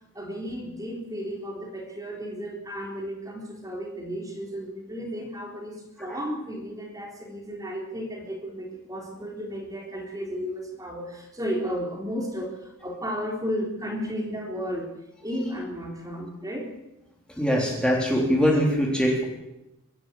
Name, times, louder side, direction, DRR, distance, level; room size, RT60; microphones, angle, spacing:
voice 1, 0.1-14.9 15.2-16.7, equal, 15° right, 0 dB, 3.8 m, -33 dB
voice 2, 17.4-19.2, equal, 5° left, -1 dB, 3.6 m, -22 dB
24.0 x 13.0 x 8.8 m, 0.95 s
head